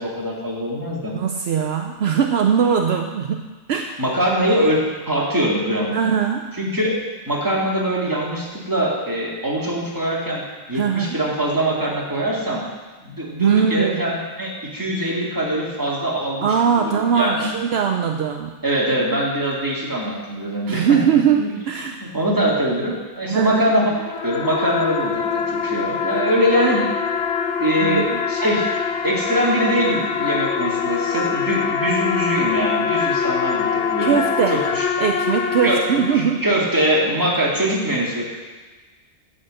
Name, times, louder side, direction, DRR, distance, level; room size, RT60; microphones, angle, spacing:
voice 1, 0.0-1.1 4.0-4.8 5.1-6.1 6.6-7.0 7.3-10.4 10.7-12.6 13.0-17.5 18.6-21.0 21.4-21.5 22.0-23.9 24.2-26.9 27.6-28.7 29.0-34.2 34.5-34.8 35.6-35.8 36.4-38.3, equal, 20° right, -5 dB, 2.2 m, -22 dB
voice 2, 1.1-4.0 5.9-6.5 10.7-11.2 13.4-14.0 16.4-18.5 20.7-22.1 23.3-23.6 27.8-28.2 34.0-34.6 35.0-36.4, right 7 dB, 70° right, 4 dB, 0.9 m, -20 dB
sound 1, 23.8-36.6, left 6 dB, 85° left, 1.0 m, -24 dB
11.0 x 4.4 x 7.6 m, 1.3 s
omnidirectional pair, 1.1 m